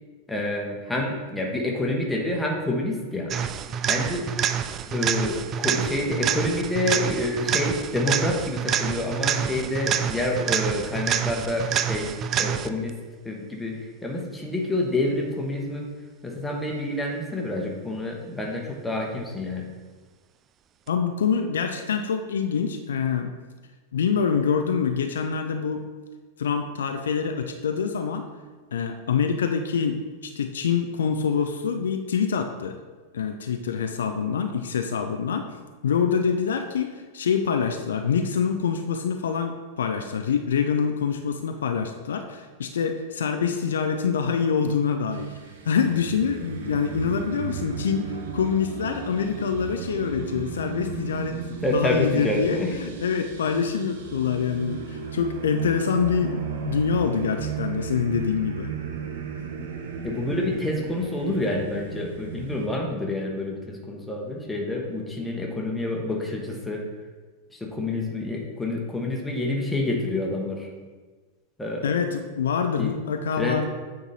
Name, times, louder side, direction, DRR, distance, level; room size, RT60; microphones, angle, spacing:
voice 1, 0.3-3.3 3.9-4.3 4.9-13.0 13.2-15.9 16.2-19.7 51.6-52.8 60.0-66.8 67.5-70.7 71.6-72.0 72.8-72.9 73.4-73.6, left 1 dB, 5° left, 0 dB, 1.2 m, -28 dB
sound 1, 3.3-12.9 20.9-21.0, right 9 dB, 30° right, 0.3 m, -27 dB
voice 2, 20.9-23.3 23.9-25.8 26.4-28.3 28.7-32.8 33.1-35.6 35.8-45.3 45.7-58.7 71.8-73.6, left 6 dB, 65° left, 6 dB, 0.4 m, -25 dB
sound 2, 45.1-62.7, right 6 dB, 60° right, 0.8 m, -35 dB
8.6 x 3.9 x 4.1 m, 1.4 s
figure-of-eight pair, 90°, 0 cm